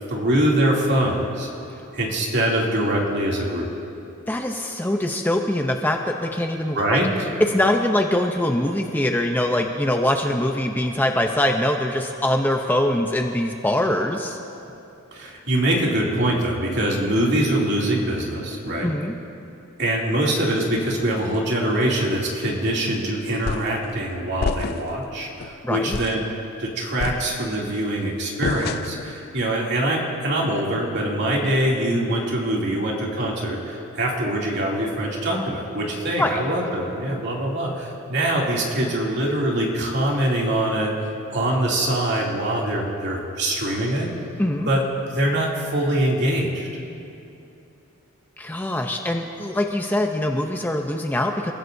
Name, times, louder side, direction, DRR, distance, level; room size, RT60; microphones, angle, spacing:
voice 1, 0.0-1.5 1.9-3.7 6.7-7.1 15.1-18.9 19.8-26.2 26.6-40.9 41.3-44.1 44.7-44.8 45.1-46.7, right 1 dB, 55° right, -3 dB, 2.7 m, -23 dB
voice 2, 4.3-7.0 7.4-14.4 18.8-19.1 25.6-26.0 36.2-36.4 44.4-44.7 48.4-51.5, left 1 dB, 10° left, 3 dB, 0.6 m, -23 dB
sound 1, 23.5-23.8 24.4-25.0 25.4-25.5 25.9-26.3 27.0-27.7 28.4-29.1, left 5 dB, 45° left, 0.3 m, -29 dB
29.5 x 15.5 x 2.7 m, 2.7 s
head